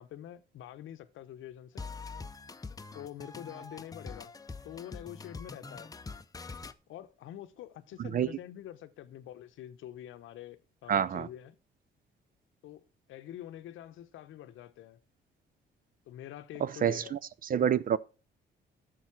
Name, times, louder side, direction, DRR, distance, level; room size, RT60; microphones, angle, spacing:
voice 1, 0.0-1.8 2.9-4.3 4.6-5.9 6.9-11.6 12.6-15.0 16.1-17.2, left 12 dB, 80° left, 0.8 m, -46 dB
sound 1, 1.8-6.7, left 4 dB, 20° left, 0.6 m, -44 dB
voice 2, 10.9-11.3 16.6-17.2 17.5-18.0, right 9 dB, 45° right, 0.5 m, -27 dB
7.8 x 6.5 x 5.8 m
cardioid pair, 90°, 20 cm